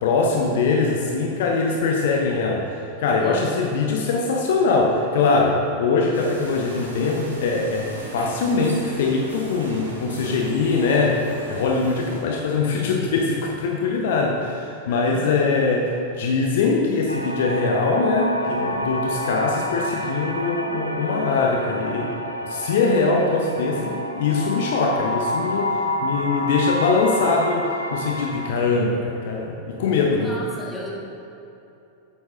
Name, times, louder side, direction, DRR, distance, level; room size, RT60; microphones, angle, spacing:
voice 1, 0.0-11.2 11.5-22.1 22.4-30.3, left 4 dB, 55° left, 0 dB, 0.8 m, -22 dB
voice 2, 3.2-3.5 14.9-15.5 30.1-30.9, left 1 dB, 10° left, -5 dB, 1.9 m, -35 dB
sound 1, 6.1-12.2, equal, 80° right, 1.5 m, -37 dB
sound 2, 17.1-28.5, equal, 90° left, 0.5 m, -29 dB
8.3 x 8.0 x 3.7 m, 2.8 s
figure-of-eight pair, 90°, 0 cm